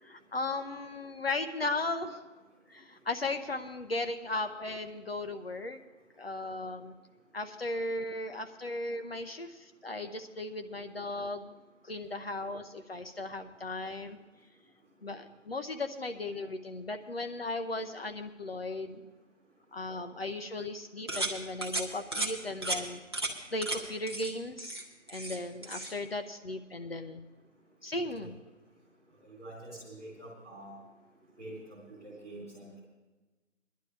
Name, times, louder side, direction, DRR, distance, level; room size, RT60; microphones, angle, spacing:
voice 1, 0.0-2.2 2.7-5.8 6.2-6.9 7.3-11.5 11.8-14.2 15.0-19.0 19.7-23.0 23.5-24.8 25.1-27.2 27.8-28.4, left 2 dB, 50° left, 7 dB, 0.8 m, -36 dB
sound 1, 21.1-21.3 21.6-21.8 22.1-22.3 22.6-22.8 23.1-23.3 23.6-23.8 24.1-24.3 24.6-25.4 25.6-25.9, right 2 dB, 20° right, 0.8 m, -34 dB
voice 2, 29.4-30.8 31.4-32.8, right 1 dB, 5° left, -12 dB, 1.1 m, -46 dB
19.0 x 11.0 x 3.3 m, 1.2 s
figure-of-eight pair, 170°, 37 cm